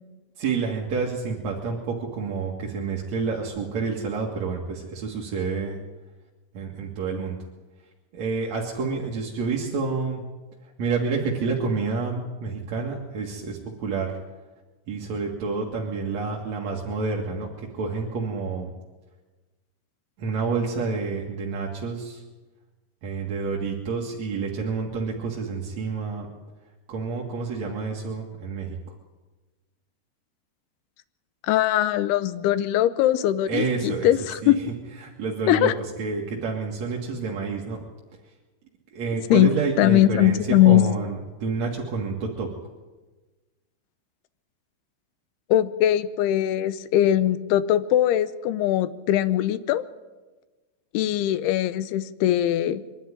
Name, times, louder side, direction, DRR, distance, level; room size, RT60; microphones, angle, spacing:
voice 1, 0.4-5.8 6.5-7.4 8.1-10.2 10.8-14.1 14.9-17.5 17.8-18.7 20.2-22.2 23.0-26.3 26.9-28.8 33.5-34.1 34.4-34.5 35.0-35.7 36.0-37.8 38.9-40.4 40.6-41.1 41.4-42.5, right 4 dB, 50° right, -2 dB, 2.3 m, -28 dB
voice 2, 31.5-34.6 35.5-35.7 39.3-39.5 39.8-40.9 45.5-49.8 50.9-52.8, left 13 dB, 80° left, 14 dB, 2.4 m, -21 dB
23.5 x 12.0 x 9.9 m, 1.2 s
omnidirectional pair, 5.3 m